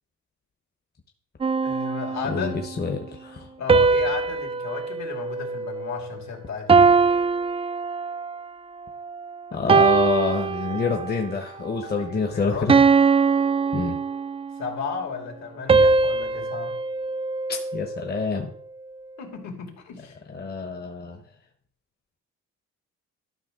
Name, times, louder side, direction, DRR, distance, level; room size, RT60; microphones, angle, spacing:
sound 1, 1.4-2.7 3.7-6.2 6.7-8.4 9.0-9.2 9.7-11.2 11.7-12.0 12.7-14.6 15.7-18.1, right 4 dB, 20° right, 0.3 m, -22 dB
voice 1, 1.6-2.6 3.6-6.9 9.5-9.7 11.8-12.7 14.6-16.8 19.2-20.2, left 6 dB, 65° left, 2.6 m, -34 dB
voice 2, 2.3-3.5 9.5-12.7 13.7-14.0 17.5-18.5 20.3-21.2, left 4 dB, 35° left, 1.2 m, -27 dB
12.0 x 5.7 x 3.8 m
cardioid pair, 90°, 30 cm